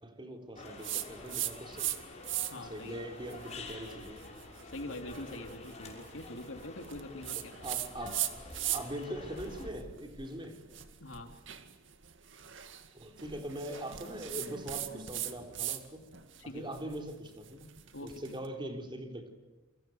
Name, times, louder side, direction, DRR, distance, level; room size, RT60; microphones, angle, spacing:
voice 1, 0.0-1.9 2.6-4.3 4.9-5.0 7.4-8.3 8.7-10.7 12.9-16.1 16.4-17.7 18.0-19.3, right 1 dB, 25° right, 4 dB, 3.9 m, -42 dB
sound 1, 0.6-9.7, left 3 dB, 35° left, 6.1 m, -48 dB
sound 2, 0.8-2.0 2.2-2.7 3.3-9.0 9.4-15.8 16.1-18.3, right 12 dB, 70° right, 2.2 m, -39 dB
voice 2, 2.5-3.0 4.6-7.5 11.0-11.3 16.4-16.7 17.9-18.1, left 1 dB, 80° left, 5 dB, 3.3 m, -44 dB
28.5 x 25.5 x 8.0 m, 1.1 s
head